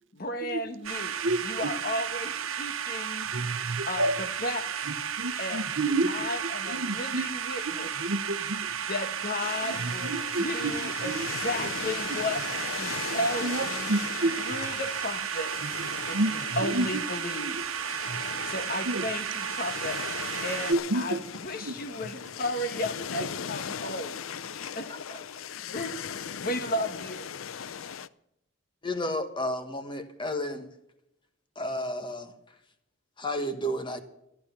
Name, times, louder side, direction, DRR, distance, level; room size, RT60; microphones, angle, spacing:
voice 1, 0.1-1.2 1.4-3.3 3.9-4.7 5.4-5.7 6.1-7.9 8.9-11.1 11.4-12.4 12.8-13.9 14.4-15.5 16.1-17.6 18.4-20.0 20.4-24.2 24.7-25.2 25.7-25.9 26.4-27.3, left 1 dB, 45° left, 9 dB, 1.2 m, -34 dB
sound 1, 0.8-20.7, right 8 dB, 90° right, 1.1 m, -33 dB
voice 2, 1.2-1.8 3.3-4.2 4.9-6.3 6.6-7.3 7.6-8.7 9.6-10.7 11.0-11.3 12.1-12.2 13.1-14.6 15.6-17.0 17.4-17.6 18.1-18.2 18.8-19.1 20.7-21.2 21.6-21.9, right 2 dB, 65° right, 10 dB, 0.9 m, -30 dB
sound 2, 9.4-28.1, left 7 dB, 80° left, 0.5 m, -39 dB
voice 3, 28.8-30.7 31.5-32.3 33.2-34.0, left 1 dB, 25° left, 8 dB, 1.3 m, -32 dB
14.5 x 11.0 x 6.8 m, 0.82 s
head